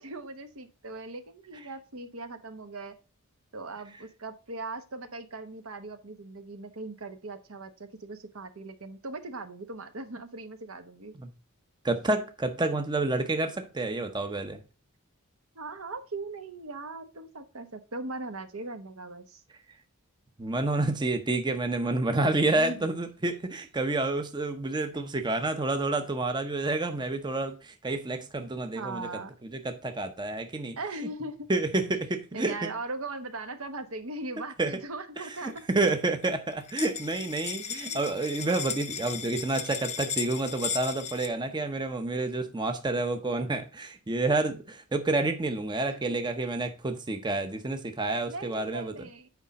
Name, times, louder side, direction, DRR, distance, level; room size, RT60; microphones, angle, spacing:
voice 1, 0.0-2.9 3.5-11.1 15.5-19.4 22.2-22.8 28.7-29.3 30.8-31.5 32.3-35.7 37.7-38.0 42.1-42.3 45.8-46.2 48.3-49.3, right 2 dB, 70° right, 1.1 m, -39 dB
voice 2, 11.8-14.6 20.4-29.1 29.4-30.8 31.5-32.7 34.6-34.8 35.2-48.9, right 2 dB, 20° right, 0.7 m, -29 dB
sound 1, 35.4-35.9 36.2-36.3 36.5-41.3, left 7 dB, 30° left, 0.7 m, -36 dB
8.1 x 5.0 x 4.0 m
head